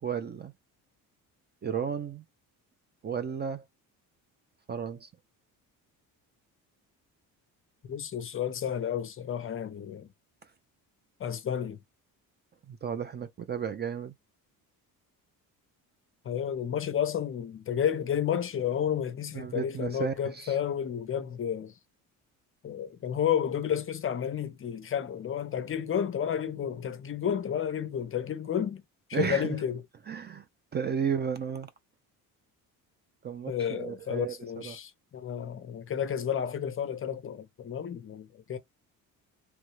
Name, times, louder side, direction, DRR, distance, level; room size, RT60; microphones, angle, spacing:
voice 1, 0.0-0.5 1.6-2.2 3.0-3.6 4.7-5.1 12.7-14.1 19.3-20.6 29.1-29.5 30.1-30.5 30.7-31.7 33.2-34.3 34.6-34.8, right 7 dB, 30° right, 0.4 m, -33 dB
voice 2, 7.9-10.1 11.2-11.8 16.2-21.7 22.6-28.8 29.1-29.8 33.5-38.6, left 9 dB, 35° left, 0.5 m, -31 dB
3.0 x 2.2 x 3.1 m
cardioid pair, 110°, 37 cm